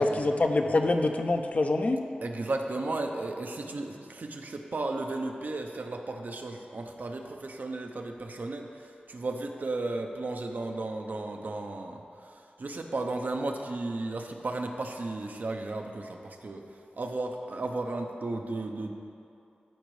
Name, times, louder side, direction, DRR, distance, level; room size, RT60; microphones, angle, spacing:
voice 1, 0.0-2.1, left 2 dB, 50° left, 5 dB, 0.5 m, -25 dB
voice 2, 2.2-18.9, right 2 dB, 65° right, 4 dB, 0.6 m, -34 dB
13.5 x 5.1 x 3.2 m, 2.7 s
wide cardioid pair, 75°, 3 cm